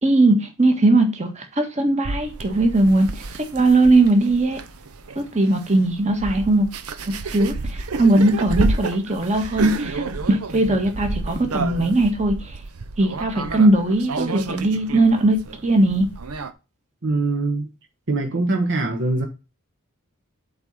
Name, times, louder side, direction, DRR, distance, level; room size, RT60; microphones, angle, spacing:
voice 1, 0.0-4.6 5.1-6.7 7.3-12.6 13.0-16.1, right 2 dB, 30° right, 1.7 m, -19 dB
sound 1, 2.0-16.5, right 3 dB, 90° right, 0.9 m, -30 dB
voice 2, 17.0-17.7 18.1-19.3, right 2 dB, 55° right, 1.2 m, -22 dB
7.8 x 4.2 x 5.5 m
head